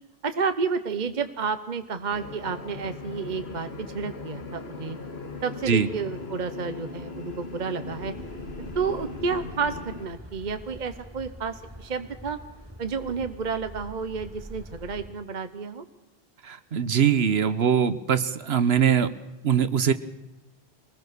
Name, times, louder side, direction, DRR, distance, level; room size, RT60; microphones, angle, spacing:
voice 1, 0.2-5.0 5.4-8.1 8.6-12.4 12.8-15.8, right 5 dB, 45° right, 9 dB, 1.1 m, -31 dB
sound 1, 2.1-10.1, left 3 dB, 75° left, 2.2 m, -39 dB
sound 2, 7.8-15.1, equal, 25° right, 4.0 m, -44 dB
voice 2, 16.4-19.1 19.4-19.9, right 7 dB, 75° right, 13 dB, 1.2 m, -22 dB
24.0 x 19.5 x 6.8 m, 1.0 s
omnidirectional pair, 1.1 m